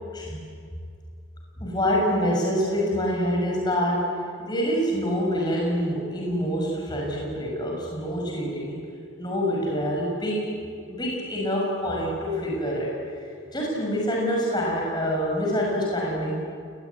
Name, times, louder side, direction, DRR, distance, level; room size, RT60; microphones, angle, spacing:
voice 1, 1.6-4.1 4.4-8.8 9.2-10.5 10.9-13.2 13.5-16.4, equal, 20° left, -2 dB, 6.3 m, -26 dB
28.5 x 20.5 x 9.6 m, 2.2 s
head